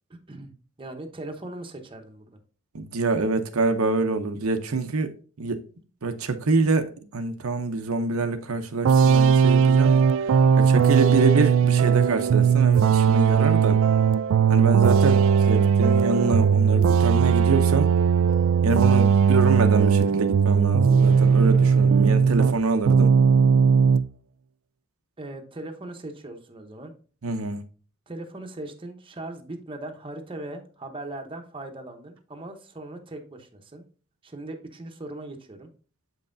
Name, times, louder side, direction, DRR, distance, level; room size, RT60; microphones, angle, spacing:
voice 1, 0.1-0.5 0.8-2.4 18.9-19.1 25.2-26.9 28.1-33.8 34.2-35.7, right 2 dB, 25° right, 0.9 m, -39 dB
voice 2, 2.7-5.1 5.4-5.6 6.0-10.1 10.6-13.8 14.5-17.9 18.6-23.2 27.2-27.6, right 3 dB, 80° right, 0.7 m, -25 dB
sound 1, 8.8-22.6 22.9-24.0, right 6 dB, 60° right, 0.3 m, -18 dB
7.6 x 5.4 x 2.6 m
head